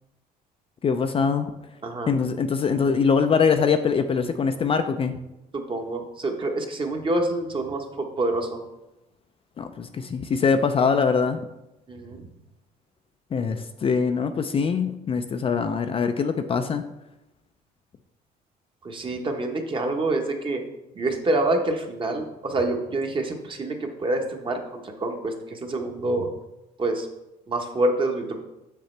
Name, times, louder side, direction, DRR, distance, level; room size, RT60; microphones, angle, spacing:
voice 1, 0.8-1.5 2.1-5.2 9.6-11.5 13.3-16.8, left 5 dB, 35° left, 7 dB, 0.4 m, -23 dB
voice 2, 1.8-2.2 5.5-8.6 11.9-12.2 18.8-20.6 20.9-26.3 26.8-27.1 27.5-28.4, right 2 dB, 30° right, 3 dB, 1.1 m, -27 dB
6.9 x 6.5 x 3.2 m, 0.94 s
cardioid pair, 110°, 17 cm